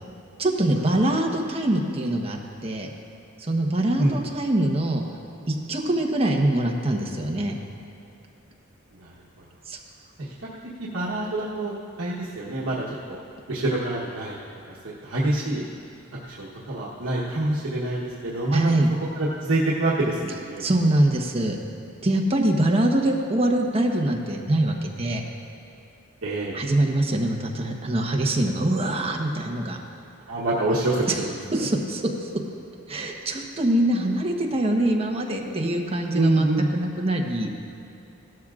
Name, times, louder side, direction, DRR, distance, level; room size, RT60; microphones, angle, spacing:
voice 1, 0.4-2.9 3.4-5.0 5.5-7.6 9.7-9.8 18.5-18.9 20.6-21.6 22.0-25.2 26.5-29.8 31.1-31.2 31.5-32.0 32.9-36.5 36.7-37.5, right 1 dB, 30° right, 1 dB, 1.0 m, -23 dB
voice 2, 9.0-9.4 10.2-10.3 10.8-13.2 13.5-14.4 14.7-15.6 16.2-18.7 19.2-20.6 26.2-26.5 30.3-31.7 36.1-36.7, right 2 dB, 80° right, -6 dB, 1.1 m, -26 dB
16.0 x 12.5 x 2.5 m, 2.8 s
head